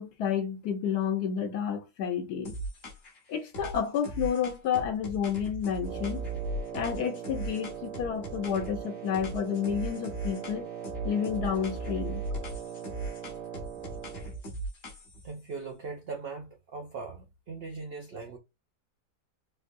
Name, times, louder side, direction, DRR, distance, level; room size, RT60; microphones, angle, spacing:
voice 1, 0.0-2.6 3.3-6.3 6.7-10.7 11.0-12.2, left 8 dB, 70° left, 1.3 m, -30 dB
sound 1, 2.4-3.2 3.5-8.8 9.1-10.6 10.8-15.3, right 2 dB, 45° left, 1.0 m, -38 dB
Wind instrument woodwind instrument, 5.8-14.4, right 9 dB, 65° right, 0.9 m, -41 dB
voice 2, 15.2-18.4, right 4 dB, 90° right, 0.5 m, -40 dB
4.3 x 2.2 x 2.5 m
omnidirectional pair, 1.8 m